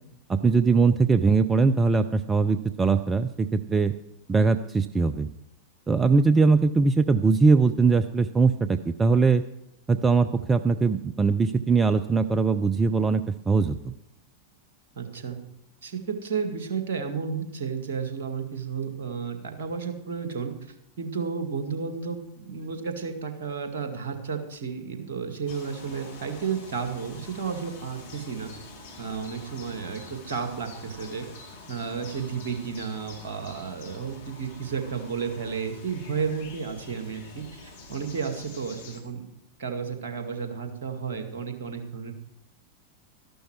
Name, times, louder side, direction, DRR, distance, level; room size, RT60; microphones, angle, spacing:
voice 1, 0.3-3.9 4.3-5.3 5.9-9.4 9.9-13.9, right 4 dB, 15° right, 11 dB, 0.5 m, -21 dB
voice 2, 15.0-15.4 15.8-20.5 21.0-28.5 29.0-31.3 31.7-39.2 39.6-42.1, right 6 dB, 55° right, 6 dB, 2.0 m, -32 dB
sound 1, 25.5-39.0, left 3 dB, 60° left, 2.2 m, -46 dB
13.5 x 11.5 x 4.6 m, 0.82 s
figure-of-eight pair, 90°, 0 cm